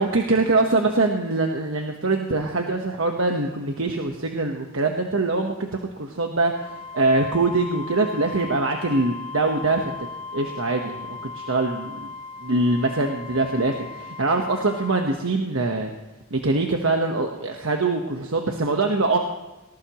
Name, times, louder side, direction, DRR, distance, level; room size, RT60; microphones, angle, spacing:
voice 1, 0.0-5.7 6.0-6.5 6.9-9.9 10.3-12.1 12.4-15.9 16.3-19.2, right 2 dB, 70° right, 3 dB, 1.3 m, -23 dB
Wind instrument woodwind instrument, 6.5-15.1, left 4 dB, 35° left, 4.6 m, -37 dB
19.0 x 19.0 x 3.1 m, 1.1 s
head